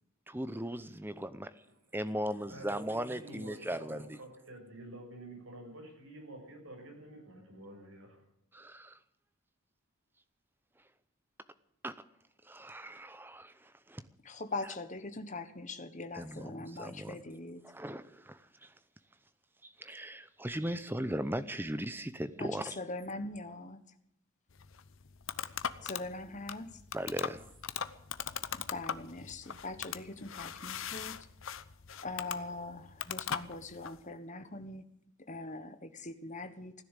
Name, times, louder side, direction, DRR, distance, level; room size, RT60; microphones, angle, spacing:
voice 1, 0.3-1.5 1.9-4.2 8.5-9.0 11.8-12.0 12.4-14.0 16.1-17.2 17.6-18.7 19.6-22.8 25.8-25.9 26.9-27.5, right 1 dB, 10° right, 13 dB, 0.7 m, -38 dB
voice 2, 2.5-8.2, right 1 dB, 65° right, 1 dB, 6.6 m, -49 dB
voice 3, 14.2-17.6 22.4-23.8 25.8-26.7 28.5-31.2 32.0-34.8 35.3-36.7, left 2 dB, 35° left, 9 dB, 1.3 m, -42 dB
sound 1, 24.5-34.0, left 8 dB, 60° left, 0.8 m, -40 dB
16.0 x 10.5 x 8.2 m, 0.76 s
head